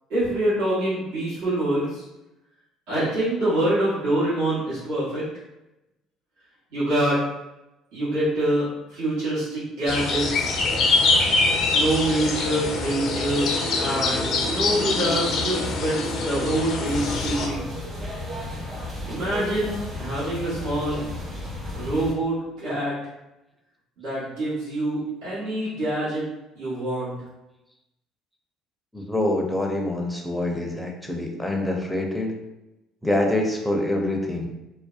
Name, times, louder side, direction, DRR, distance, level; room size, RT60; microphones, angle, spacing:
voice 1, 0.1-2.0 2.9-5.2 6.7-7.2 7.9-10.5 11.7-17.7 19.1-21.0 21.8-22.9 24.0-26.3 26.5-27.2, right 1 dB, 70° right, -11 dB, 1.1 m, -25 dB
sound 1, 9.9-17.5, left 3 dB, 60° left, 0.4 m, -24 dB
sound 2, 16.8-22.1, left 1 dB, 25° right, 1.0 m, -34 dB
voice 2, 28.9-32.4 33.0-34.5, left 1 dB, ahead, 1 dB, 0.6 m, -25 dB
2.5 x 2.1 x 2.4 m, 0.95 s
hypercardioid pair, 65°, 0 cm